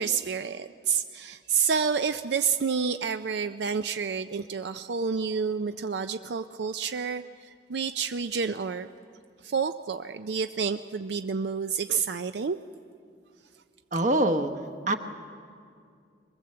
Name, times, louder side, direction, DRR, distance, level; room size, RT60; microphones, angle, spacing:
voice 1, 0.0-8.9 9.4-12.6, right 6 dB, 75° right, 9 dB, 0.5 m, -29 dB
voice 2, 13.9-14.5 14.9-15.0, right 1 dB, 45° right, 8 dB, 1.1 m, -23 dB
23.0 x 21.5 x 7.7 m, 2.3 s
head